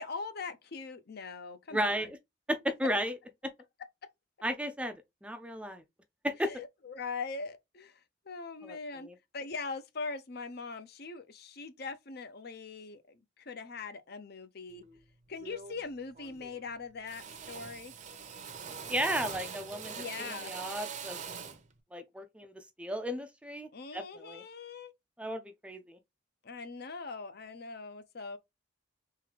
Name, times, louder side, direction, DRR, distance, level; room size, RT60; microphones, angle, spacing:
voice 1, 0.0-2.1 6.5-14.8 15.3-17.9 20.0-20.5 23.7-24.9 26.4-28.4, left 4 dB, 55° left, 0.6 m, -41 dB
voice 2, 1.7-2.2 2.5-3.2 4.4-4.9 5.2-5.8 6.2-6.5 8.6-8.8 9.0-9.1 18.9-20.0 20.3-21.2 21.9-24.4 25.2-26.0, equal, 5° right, 0.4 m, -34 dB
Drill, 14.7-15.0 15.4-15.9 16.1-16.7 17.1-21.7, right 6 dB, 40° right, 0.7 m, -43 dB
3.7 x 3.3 x 3.3 m
head